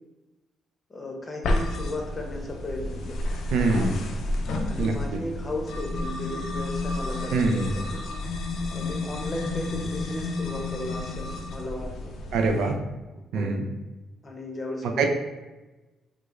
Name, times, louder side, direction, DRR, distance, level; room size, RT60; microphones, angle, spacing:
voice 1, 0.9-3.2 4.7-8.0 8.7-12.1 13.3-13.6 14.2-15.1, left 1 dB, 25° left, 1 dB, 0.7 m, -35 dB
sound 1, 1.4-12.7, left 2 dB, 70° left, 0.4 m, -31 dB
voice 2, 3.5-4.0 4.8-4.9 7.3-7.7 12.3-12.8 13.3-13.6 15.0-15.1, right 3 dB, 80° right, 4 dB, 0.4 m, -23 dB
4.7 x 2.0 x 2.4 m, 1.1 s
cardioid pair, 90°, 0 cm